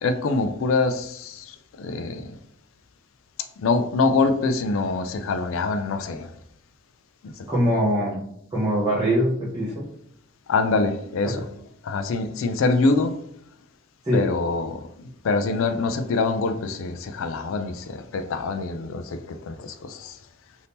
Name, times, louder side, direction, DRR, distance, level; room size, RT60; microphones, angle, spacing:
voice 1, 0.0-2.4 3.6-6.3 7.2-7.5 10.5-11.4 11.8-13.1 14.1-20.2, left 3 dB, 65° left, 8 dB, 0.4 m, -25 dB
voice 2, 7.5-8.2 8.5-9.9 11.2-11.4 14.0-14.3, equal, 20° right, -7 dB, 0.7 m, -23 dB
2.7 x 2.7 x 3.4 m, 0.71 s
head